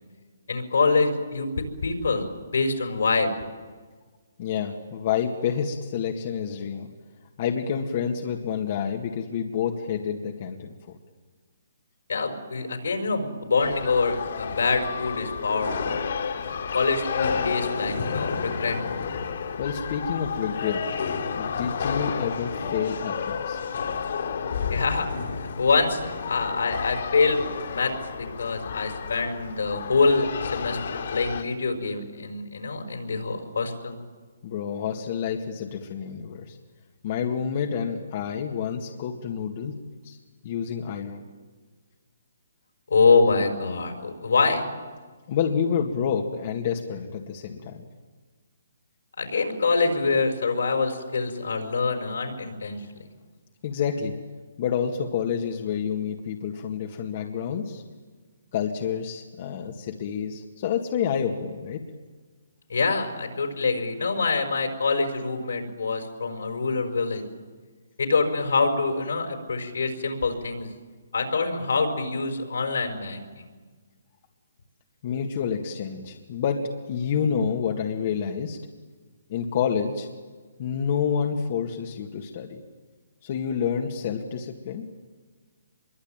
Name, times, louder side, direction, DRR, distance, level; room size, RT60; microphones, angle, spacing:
voice 1, 0.5-1.5 1.8-2.3 2.5-3.3 12.1-16.0 16.3-18.8 24.7-25.1 25.4-34.0 42.9-44.6 49.2-53.0 62.7-67.2 68.0-70.7 71.1-73.5, left 4 dB, 80° left, 5 dB, 5.7 m, -25 dB
voice 2, 4.4-6.9 7.4-11.0 19.6-20.9 21.4-23.6 34.4-36.6 37.0-39.8 40.0-40.2 40.4-41.2 45.3-47.9 53.6-54.2 54.6-57.8 58.5-61.8 75.0-78.6 79.3-80.1 80.6-82.6 83.2-84.9, left 7 dB, 40° left, 2 dB, 2.0 m, -28 dB
sound 1, 13.6-31.4, left 6 dB, 60° left, 3.6 m, -31 dB
25.0 x 23.0 x 9.0 m, 1.4 s
hypercardioid pair, 155°, 0 cm